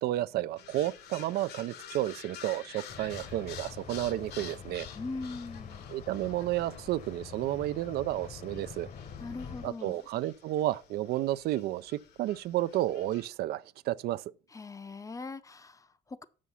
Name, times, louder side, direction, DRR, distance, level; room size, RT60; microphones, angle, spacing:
voice 1, 0.0-4.9 5.9-8.9 9.6-14.2, right 14 dB, 70° right, 0.4 m, -31 dB
sound 1, 0.6-13.3, left 8 dB, 75° left, 1.2 m, -50 dB
sound 2, 2.9-9.7, left 7 dB, 50° left, 1.0 m, -46 dB
voice 2, 4.9-5.9 9.2-10.0 14.5-16.2, left 3 dB, 20° left, 0.5 m, -41 dB
7.0 x 6.3 x 5.6 m
cardioid pair, 110°, 17 cm